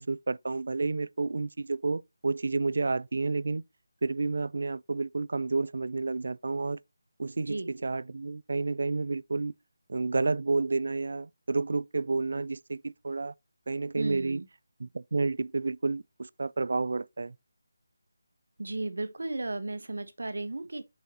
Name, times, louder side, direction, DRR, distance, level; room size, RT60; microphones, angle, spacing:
voice 1, 0.0-3.6 4.0-6.8 7.2-9.5 9.9-13.3 13.7-14.4 14.8-17.4, right 3 dB, 60° right, 0.3 m, -30 dB
voice 2, 14.0-14.5 18.6-20.8, right 2 dB, 80° right, 1.0 m, -34 dB
7.3 x 5.4 x 2.9 m
figure-of-eight pair, 170°, 0 cm